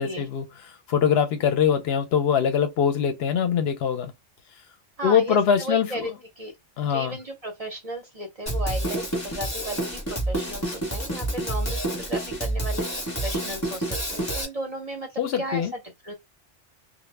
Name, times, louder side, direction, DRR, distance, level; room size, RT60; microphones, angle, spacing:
voice 1, 0.0-4.1 5.0-6.1 6.8-7.2 15.2-15.7, left 7 dB, 65° left, 0.7 m, -23 dB
voice 2, 5.0-6.5 6.8-15.1 15.4-16.1, right 1 dB, 45° right, 0.5 m, -35 dB
Drum kit, 8.5-14.5, right 1 dB, 15° left, 0.7 m, -28 dB
2.0 x 2.0 x 3.1 m
omnidirectional pair, 1.2 m